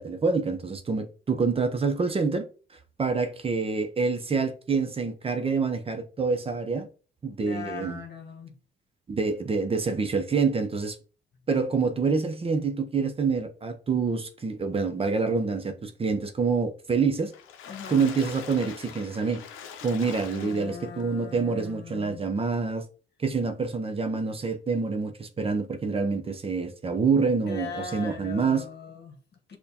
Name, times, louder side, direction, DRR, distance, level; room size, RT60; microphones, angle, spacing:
voice 1, 0.0-2.5 3.0-6.9 7.2-8.0 9.1-11.0 11.5-17.3 17.9-19.4 19.8-22.8 23.2-28.6, right 4 dB, 30° right, 0.6 m, -26 dB
voice 2, 7.4-8.6 17.7-18.0 20.3-22.2 27.4-29.6, left 5 dB, 55° left, 1.1 m, -40 dB
Water / Splash splatter, 17.2-21.0 21.6-21.7 22.0-22.1, left 8 dB, 85° left, 0.6 m, -43 dB
6.5 x 2.2 x 2.8 m
cardioid pair, 90°, 20 cm